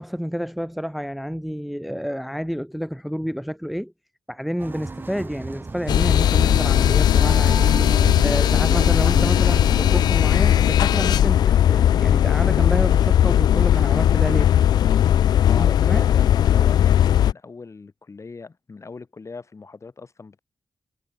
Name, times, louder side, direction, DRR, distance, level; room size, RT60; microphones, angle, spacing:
voice 1, 0.0-3.9 4.3-7.8 8.2-14.5 15.6-16.0, equal, ahead, 0.8 m, -29 dB
sound 1, 4.6-10.0, right 3 dB, 30° right, 0.5 m, -33 dB
sound 2, 5.9-17.3, left 10 dB, 85° left, 0.4 m, -17 dB
voice 2, 15.4-20.4, left 4 dB, 45° left, 4.5 m, -39 dB
cardioid pair, 55°, 7 cm